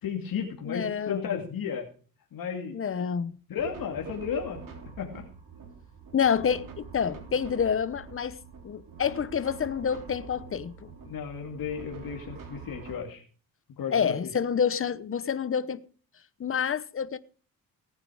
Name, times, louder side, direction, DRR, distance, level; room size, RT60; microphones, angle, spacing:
voice 1, 0.0-1.9 2.3-2.8 3.5-4.7 5.0-5.3 11.1-13.2 13.8-14.1, left 7 dB, 75° left, 2.5 m, -33 dB
voice 2, 0.7-1.2 2.7-3.4 6.1-8.4 8.6-10.9 13.9-15.8 16.4-17.2, left 7 dB, 35° left, 1.0 m, -28 dB
sound 1, 3.6-12.9, right 5 dB, 65° right, 3.6 m, -45 dB
18.0 x 9.6 x 4.9 m
cardioid pair, 125°, 35 cm